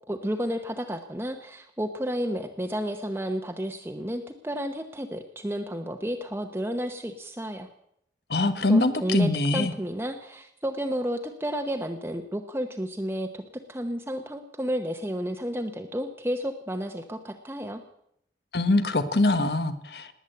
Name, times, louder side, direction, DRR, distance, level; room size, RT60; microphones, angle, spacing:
voice 1, 0.1-7.7 8.7-13.4 13.7-17.8, equal, 15° right, 5 dB, 0.9 m, -31 dB
voice 2, 8.3-9.7 18.5-20.1, left 2 dB, 70° left, 11 dB, 1.3 m, -23 dB
19.5 x 9.1 x 7.9 m, 0.73 s
head